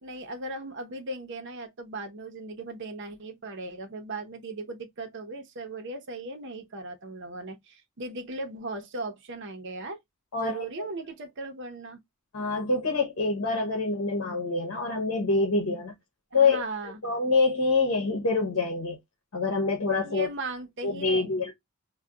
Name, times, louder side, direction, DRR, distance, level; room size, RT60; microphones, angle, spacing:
voice 1, 0.0-10.0 10.4-12.0 16.3-17.0 20.0-21.3, right 2 dB, 60° right, 0.7 m, -38 dB
voice 2, 10.3-10.9 12.3-15.9 16.3-16.6 17.0-19.0 19.3-20.3 20.8-21.5, left 3 dB, 90° left, 0.8 m, -26 dB
3.7 x 2.2 x 2.2 m
head